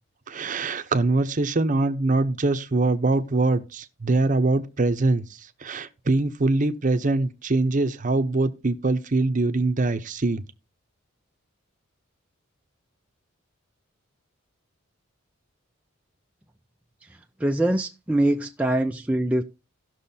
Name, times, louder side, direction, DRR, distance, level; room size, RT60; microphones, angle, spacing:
voice 1, 0.3-10.4, right 2 dB, 35° right, 0.7 m, -23 dB
voice 2, 17.0-19.4, right 1 dB, 5° right, 0.4 m, -24 dB
17.5 x 6.3 x 2.7 m
head